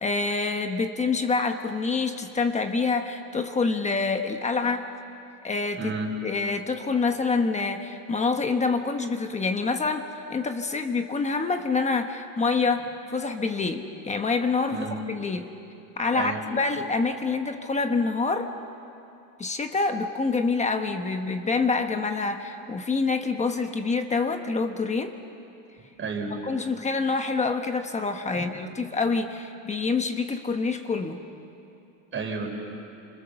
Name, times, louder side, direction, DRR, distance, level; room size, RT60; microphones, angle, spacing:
voice 1, 0.0-4.9 5.4-5.9 6.2-15.5 16.0-18.5 19.4-25.1 26.5-31.2, left 4 dB, 15° left, 6 dB, 1.0 m, -26 dB
voice 2, 5.8-6.1 14.7-15.0 16.1-16.4 26.0-26.4 28.3-28.5 32.1-32.5, right 4 dB, 25° right, 2 dB, 4.3 m, -31 dB
30.0 x 27.0 x 7.0 m, 2.8 s
cardioid pair, 155°, 43 cm